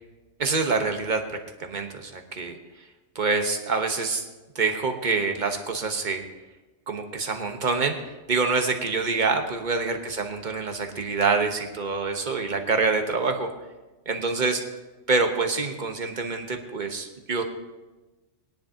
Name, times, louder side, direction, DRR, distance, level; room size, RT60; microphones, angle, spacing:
voice 1, 0.4-2.6 3.1-4.2 4.5-6.2 6.9-7.9 8.3-13.5 14.1-14.6 15.1-17.4, right 4 dB, 40° right, 5 dB, 1.2 m, -26 dB
20.5 x 10.5 x 2.9 m, 1.1 s
omnidirectional pair, 1.2 m